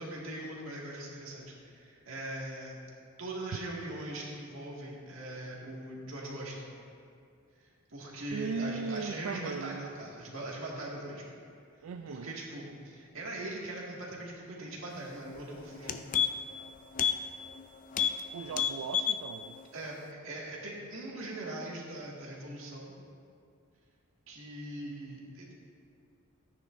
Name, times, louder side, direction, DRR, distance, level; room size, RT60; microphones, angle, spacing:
voice 1, 0.0-2.8 3.2-6.7 7.9-11.3 12.1-16.1 19.7-23.0 24.3-25.6, right 1 dB, 65° right, -4 dB, 2.0 m, -41 dB
voice 2, 8.3-9.9 11.8-12.3 18.3-19.6, right 5 dB, 85° right, 7 dB, 0.4 m, -37 dB
sound 1, 15.3-15.4 15.7-16.6 16.9-17.2 17.5-17.6 17.9-18.2 18.5-19.2 19.6-19.7, left 9 dB, 40° left, 0.4 m, -29 dB
14.0 x 9.6 x 2.6 m, 2.3 s
head